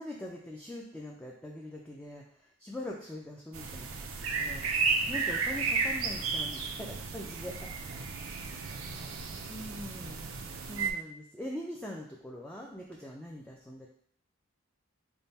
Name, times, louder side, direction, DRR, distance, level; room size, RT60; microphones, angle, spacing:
voice 1, 0.0-2.2 2.6-7.7 9.5-10.3 10.7-13.9, left 1 dB, 5° left, -2 dB, 0.4 m, -42 dB
sound 1, 3.5-10.9, right 4 dB, 75° right, 0.4 m, -33 dB
3.5 x 2.1 x 4.0 m, 0.65 s
head